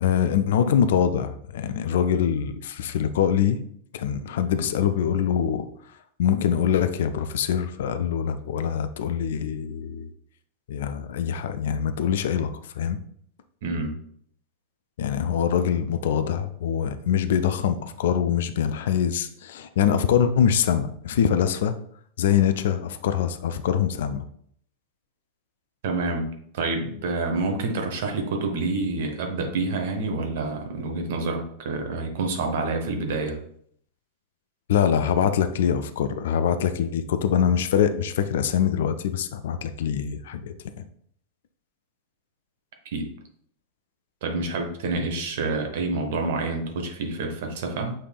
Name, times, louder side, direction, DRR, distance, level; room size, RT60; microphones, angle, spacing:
voice 1, 0.0-3.6 3.9-5.7 6.2-10.1 10.7-12.5 12.8-13.0 15.0-21.8 22.2-24.2 34.7-40.8, left 8 dB, 60° left, 10 dB, 0.3 m, -24 dB
voice 2, 13.6-14.0 25.8-26.3 26.5-33.4 42.9-43.1 44.2-47.9, right 3 dB, 55° right, 4 dB, 0.9 m, -28 dB
6.5 x 3.3 x 2.3 m, 0.64 s
figure-of-eight pair, 90°, 0 cm